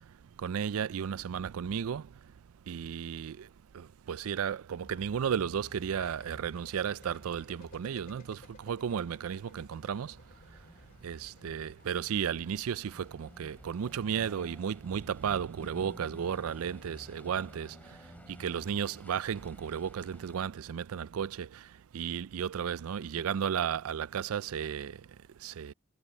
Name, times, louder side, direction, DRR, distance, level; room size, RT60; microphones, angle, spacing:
voice 1, 0.4-2.0 2.7-3.4 4.1-8.4 8.7-10.1 11.0-17.7 18.4-21.5 21.9-24.9 25.4-25.7, right 8 dB, 75° right, 0.4 m, -33 dB
sound 1, 4.8-14.2, left 1 dB, 40° left, 3.3 m, -56 dB
sound 2, 5.6-20.4, equal, 5° left, 3.0 m, -55 dB
head